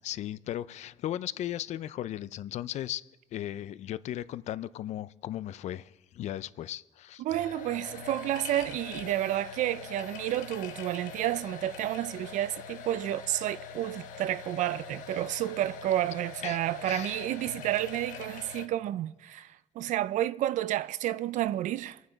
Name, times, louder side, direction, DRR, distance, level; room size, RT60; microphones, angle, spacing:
voice 1, 0.0-3.0 3.3-7.2 16.4-16.6 16.8-17.2, left 12 dB, 60° left, 0.4 m, -36 dB
voice 2, 7.2-22.0, right 13 dB, 70° right, 0.4 m, -30 dB
sound 1, 7.3-18.7, left 6 dB, 85° left, 1.1 m, -43 dB
24.5 x 9.4 x 3.9 m
cardioid pair, 140°, 13 cm